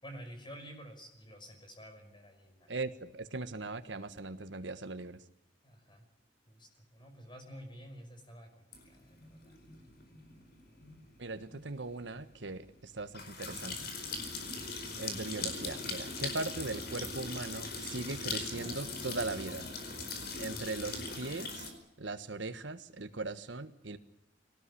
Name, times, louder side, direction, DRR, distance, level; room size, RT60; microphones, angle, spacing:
voice 1, 0.0-2.7 5.6-6.1 6.5-9.5 14.3-14.6, equal, 25° left, 6 dB, 5.6 m, -50 dB
voice 2, 2.7-5.2 11.2-13.9 15.0-19.7 20.4-21.7 22.0-24.0, right 3 dB, 85° right, 10 dB, 1.5 m, -39 dB
sound 1, 8.7-21.7, left 3 dB, 60° left, 4.8 m, -41 dB
23.0 x 18.5 x 9.9 m, 0.78 s
head